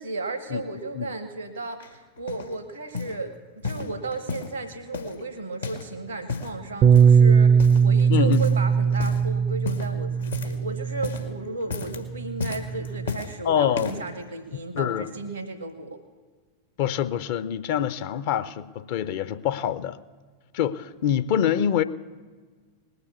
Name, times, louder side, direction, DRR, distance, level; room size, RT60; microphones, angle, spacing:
voice 1, 0.0-16.0, right 3 dB, 85° right, 7 dB, 1.0 m, -34 dB
sound 1, 1.8-2.5 2.9-3.2 3.6-4.6 4.9-5.9 6.2-6.6 6.9-7.2 7.6-8.0 8.3-8.6 8.9-9.2 9.6-10.7 10.9-11.3 11.6-12.0 12.4-13.3 13.7-14.1 14.8-14.9, left 4 dB, 75° left, 1.5 m, -33 dB
Bass guitar, 6.8-11.3 12.1-13.1, right 6 dB, 35° right, 0.4 m, -19 dB
voice 2, 8.1-8.4 13.4-13.9 14.5-15.1 16.8-20.0 20.5-21.8, left 9 dB, 50° left, 14 dB, 0.6 m, -25 dB
19.5 x 6.8 x 8.4 m, 1.5 s
figure-of-eight pair, 90°, 0 cm